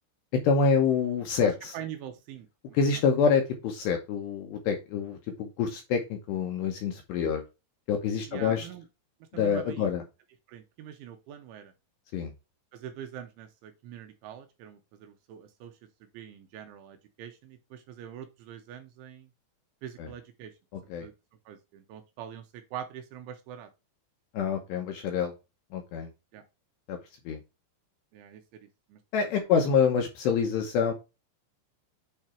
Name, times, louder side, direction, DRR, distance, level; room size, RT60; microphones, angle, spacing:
voice 1, 0.3-1.7 2.7-7.4 7.9-8.7 9.3-10.0 12.1-12.3 20.0-20.1 20.9-21.1 24.3-25.3 25.7-26.1 26.9-27.0 27.3-27.4 29.1-30.9, left 6 dB, 75° left, 2.6 m, -26 dB
voice 2, 1.4-2.8 8.3-8.8 9.3-9.9 10.5-11.7 12.7-15.7 16.1-19.3 19.8-20.5 21.0-21.1 21.5-23.7 26.3-26.4 28.1-29.3, right 9 dB, 80° right, 3.0 m, -44 dB
8.7 x 3.3 x 4.4 m
omnidirectional pair, 5.9 m